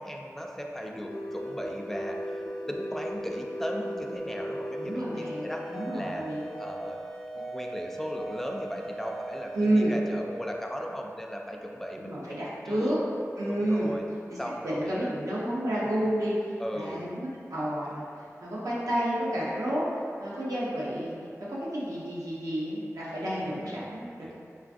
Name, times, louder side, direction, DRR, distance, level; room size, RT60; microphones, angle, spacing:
voice 1, 0.0-6.2 6.6-7.0 7.4-13.0 13.5-14.1 14.4-15.1 16.6-17.0 23.4-24.3, equal, 5° left, 0 dB, 0.3 m, -37 dB
sound 1, 0.8-11.2, equal, 80° left, 0.5 m, -38 dB
voice 2, 4.8-6.4 9.5-9.9 12.0-13.0 13.4-13.9 14.3-14.4 14.6-18.0 18.4-21.1 21.5-24.3, right 1 dB, 85° right, -7 dB, 0.7 m, -30 dB
3.2 x 2.4 x 2.4 m, 2.3 s
cardioid pair, 45°, 6 cm